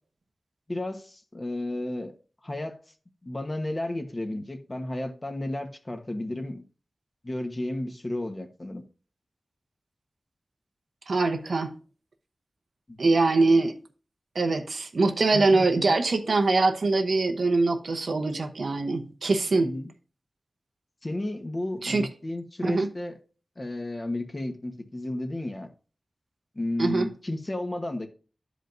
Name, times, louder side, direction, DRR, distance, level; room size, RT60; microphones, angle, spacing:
voice 1, 0.7-2.1 2.4-2.8 3.2-6.6 7.2-8.8 12.9-13.0 15.3-15.9 19.6-19.9 21.0-23.2 23.6-25.7 26.5-28.1, left 1 dB, 35° left, 1.1 m, -33 dB
voice 2, 11.1-11.7 13.0-13.7 14.3-19.7 21.8-22.1 22.6-22.9 26.8-27.1, right 3 dB, 80° right, 0.9 m, -23 dB
12.0 x 5.0 x 2.6 m
wide cardioid pair, 65°, 0 cm